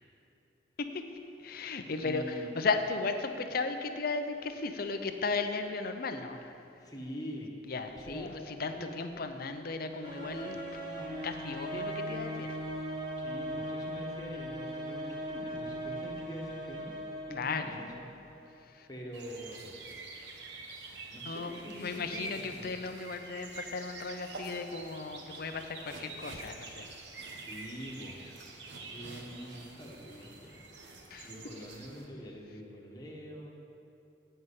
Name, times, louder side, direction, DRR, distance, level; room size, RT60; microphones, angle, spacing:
voice 1, 1.4-6.7 7.7-10.6 11.2-12.6 17.3-17.8 18.6-18.9 21.2-27.0 27.3-27.5 31.1-31.3, left 4 dB, 55° left, 7 dB, 0.6 m, -36 dB
voice 2, 2.0-2.5 6.8-7.5 7.9-8.4 8.6-9.3 13.2-16.9 17.3-17.9 18.9-19.6 21.0-22.8 27.4-28.2 28.9-30.6 31.2-33.5, equal, 20° left, -2 dB, 1.3 m, -44 dB
sound 1, 10.0-18.4, equal, 25° right, 1.3 m, -39 dB
sound 2, 19.1-32.1, right 3 dB, 75° right, 1.0 m, -46 dB
9.1 x 5.5 x 8.1 m, 2.7 s
head